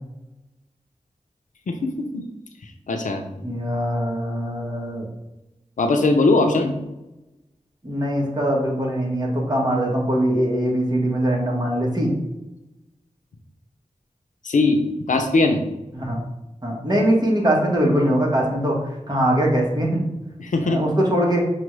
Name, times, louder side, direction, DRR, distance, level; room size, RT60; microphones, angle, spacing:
voice 1, 1.7-2.2 2.9-3.2 5.8-6.7 14.4-14.8 15.1-15.6 20.4-20.8, left 3 dB, 85° left, 5 dB, 0.5 m, -20 dB
voice 2, 3.4-5.1 6.4-6.6 7.8-12.1 15.9-16.2 16.6-18.8 19.1-20.0 20.7-21.4, equal, 35° right, -3 dB, 1.3 m, -22 dB
6.0 x 2.4 x 3.2 m, 0.97 s
wide cardioid pair, 55°, 13 cm